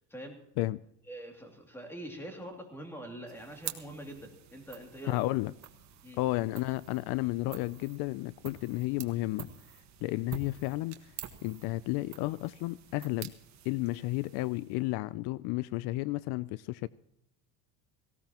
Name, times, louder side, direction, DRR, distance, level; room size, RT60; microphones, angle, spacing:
voice 1, 0.1-0.4 1.1-5.2 6.0-6.2, right 1 dB, 5° left, 3 dB, 2.6 m, -44 dB
sound 1, 3.3-15.0, right 9 dB, 45° right, 1.4 m, -48 dB
voice 2, 5.0-5.5 6.2-9.5 10.0-11.0 11.4-13.3 13.6-16.9, left 19 dB, 70° left, 19 dB, 0.5 m, -32 dB
18.0 x 17.0 x 2.9 m, 0.77 s
cardioid pair, 150°, 39 cm